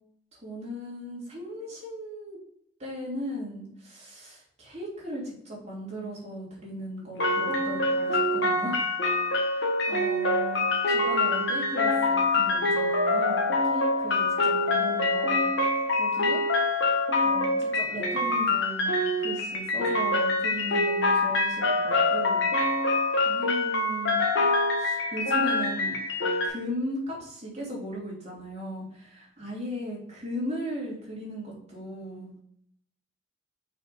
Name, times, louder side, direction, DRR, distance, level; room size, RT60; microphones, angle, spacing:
voice 1, 0.4-2.4 2.8-8.8 9.4-16.4 17.2-22.4 23.2-24.3 24.8-26.0 26.4-32.3, equal, 35° right, -4 dB, 2.9 m, -37 dB
sound 1, 7.2-26.5, left 2 dB, 65° left, 1.4 m, -25 dB
5.8 x 5.1 x 4.2 m, 0.70 s
head